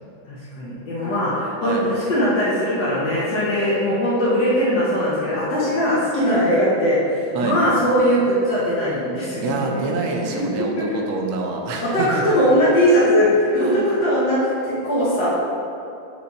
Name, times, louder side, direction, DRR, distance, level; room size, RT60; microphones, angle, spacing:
voice 1, 0.3-9.8 10.3-11.0 11.8-15.3, equal, 60° left, -9 dB, 1.7 m, -20 dB
voice 2, 9.4-12.2 13.5-13.9, right 3 dB, 75° right, 1 dB, 1.5 m, -26 dB
6.9 x 3.3 x 5.2 m, 2.6 s
omnidirectional pair, 2.4 m